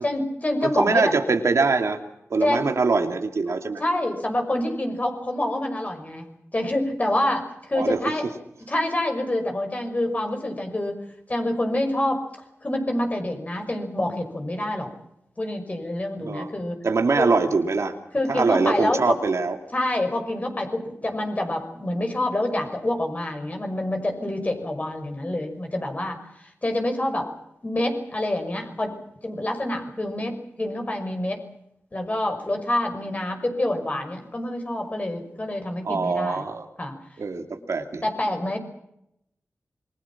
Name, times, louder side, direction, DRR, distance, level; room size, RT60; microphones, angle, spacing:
voice 1, 0.0-1.1 2.4-2.7 3.8-6.3 6.5-8.3 8.7-11.0 11.3-12.2 12.6-14.9 15.4-16.8 17.2-17.3 18.1-19.2 19.7-27.3 27.6-28.9 29.2-31.4 31.9-36.4 36.8-36.9 38.0-38.6, left 1 dB, 30° left, 5 dB, 5.7 m, -27 dB
voice 2, 0.6-2.0 2.3-3.8 7.7-8.0 16.2-16.5 16.8-17.9 18.3-19.6 35.8-36.6 37.2-38.0, right 4 dB, 70° right, 5 dB, 2.5 m, -23 dB
27.5 x 23.0 x 6.0 m, 0.80 s
wide cardioid pair, 110°, 5 cm